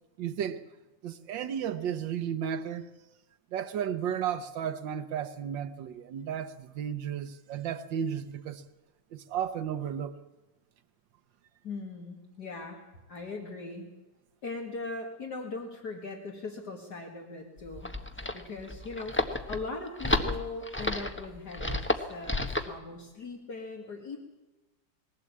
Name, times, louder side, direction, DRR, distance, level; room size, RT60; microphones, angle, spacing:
voice 1, 0.2-0.6 1.0-2.9 3.5-8.6 9.1-10.2, right 9 dB, 85° right, 1.6 m, -33 dB
voice 2, 11.6-12.8 13.1-13.9 14.4-17.9 18.3-24.2, left 3 dB, 60° left, 2.6 m, -40 dB
sound 1, 17.6-22.8, left 1 dB, 10° left, 1.0 m, -31 dB
21.0 x 16.0 x 8.6 m
omnidirectional pair, 2.0 m